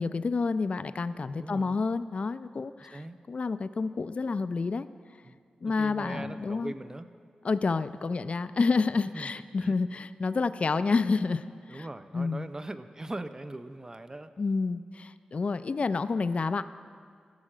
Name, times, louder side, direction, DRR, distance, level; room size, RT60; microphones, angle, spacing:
voice 1, 0.0-3.0 3.3-4.9 5.6-6.7 7.4-11.9 12.1-12.5 14.4-16.6, left 4 dB, 50° left, 13 dB, 0.3 m, -29 dB
voice 2, 1.4-1.8 2.8-3.2 5.2-5.4 5.6-7.1 9.1-9.3 9.6-9.7 11.7-14.3, right 2 dB, 25° right, 10 dB, 0.5 m, -40 dB
14.5 x 6.4 x 4.9 m, 2.1 s
cardioid pair, 60°, 3 cm